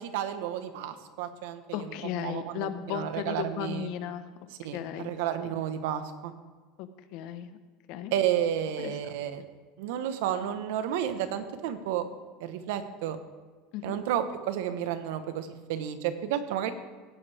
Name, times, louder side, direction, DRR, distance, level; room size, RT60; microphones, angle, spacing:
voice 1, 0.0-1.6 2.2-3.9 4.6-6.3 8.1-9.4 9.8-12.1 12.4-13.2 13.8-16.7, right 10 dB, 75° right, 9 dB, 1.2 m, -31 dB
voice 2, 1.7-4.3 4.7-5.1 5.4-5.6 6.8-7.6 7.9-8.1 8.8-9.0 13.7-14.0, left 10 dB, 65° left, 10 dB, 1.1 m, -35 dB
17.0 x 10.0 x 3.5 m, 1.4 s
supercardioid pair, 110°, 0 cm